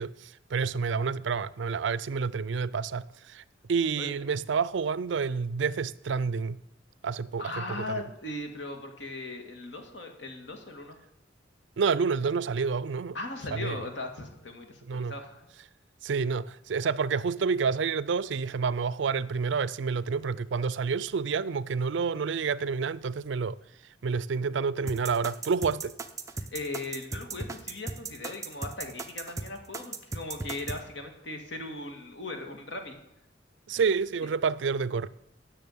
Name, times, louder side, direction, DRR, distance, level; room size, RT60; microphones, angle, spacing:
voice 1, 0.0-3.4 3.7-6.6 7.0-8.0 11.8-13.2 13.5-13.8 14.9-15.1 16.0-23.6 24.0-25.9 33.7-35.1, right 5 dB, 80° right, 0.4 m, -29 dB
voice 2, 7.4-11.0 13.1-15.4 26.4-33.0 34.2-34.3, left 2 dB, 75° left, 1.9 m, -38 dB
sound 1, 24.9-30.8, right 3 dB, 15° right, 0.7 m, -36 dB
10.5 x 6.7 x 8.5 m
head